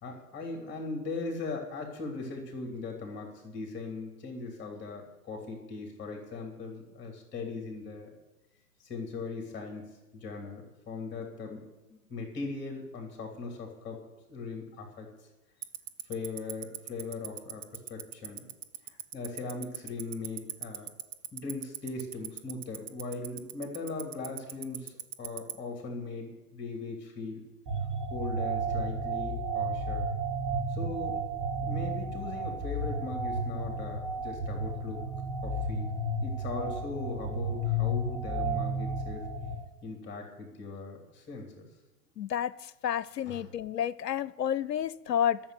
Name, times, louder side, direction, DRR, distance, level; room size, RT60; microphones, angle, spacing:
voice 1, 0.0-8.1 8.8-9.9 10.1-11.6 11.9-14.0 14.3-15.1 16.0-17.6 17.9-18.5 18.9-20.9 21.3-27.4 28.1-30.1 30.7-31.2 31.6-35.0 35.4-39.3 39.8-41.7 43.2-43.5, left 3 dB, 20° left, 2 dB, 2.8 m, -39 dB
Tick-tock, 15.6-25.5, right 13 dB, 50° right, 0.9 m, -36 dB
sound 1, 27.7-39.5, right 1 dB, 30° right, 2.7 m, -32 dB
voice 2, 42.2-45.4, left 10 dB, 80° left, 20 dB, 0.6 m, -30 dB
12.5 x 7.3 x 9.4 m, 1.0 s
figure-of-eight pair, 110°, 48 cm